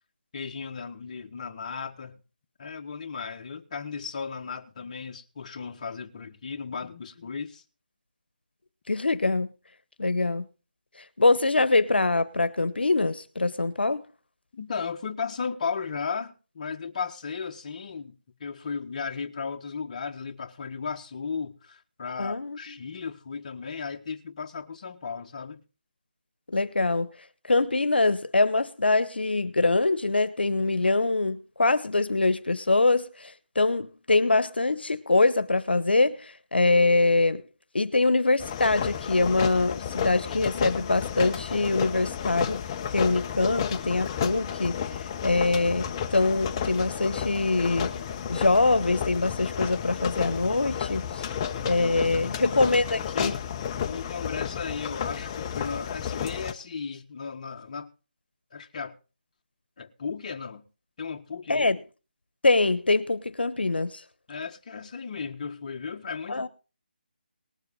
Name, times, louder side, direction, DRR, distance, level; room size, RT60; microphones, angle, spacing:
voice 1, 0.3-2.2 2.6-7.6 14.5-25.6 52.2-52.6 53.1-53.4 53.9-57.9 58.5-58.9 59.8-60.6 61.0-61.7 64.3-66.5, left 5 dB, 40° left, 1.5 m, -35 dB
voice 2, 8.9-9.5 10.0-10.4 11.0-14.0 22.2-22.6 26.5-27.1 27.4-37.4 37.7-42.6 42.9-47.9 48.3-51.3 51.6-53.3 61.5-61.8 62.4-64.0 66.3-66.5, left 3 dB, 90° left, 1.0 m, -24 dB
sound 1, 38.4-56.5, left 8 dB, 25° left, 0.9 m, -32 dB
19.0 x 7.7 x 5.5 m
figure-of-eight pair, 160°, 5 cm